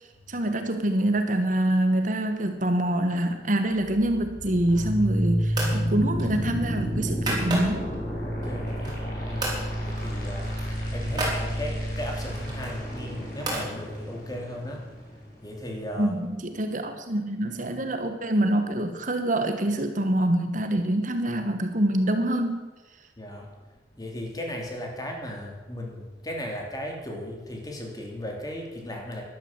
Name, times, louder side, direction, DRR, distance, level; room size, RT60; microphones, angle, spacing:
voice 1, 0.3-7.9 16.0-22.7, right 1 dB, 45° right, 7 dB, 1.2 m, -25 dB
sound 1, 3.7-15.7, equal, 50° left, 5.5 m, -30 dB
sound 2, 4.6-5.1 5.5-5.8 6.2-8.0 8.4-9.1 9.4-9.6 10.0-10.1 10.4-11.4 12.2-13.7, right 2 dB, 25° right, 4.6 m, -33 dB
voice 2, 8.2-15.1 15.4-16.2 23.2-29.2, left 1 dB, 20° left, 1 dB, 3.0 m, -37 dB
12.5 x 12.0 x 7.4 m, 1.2 s
head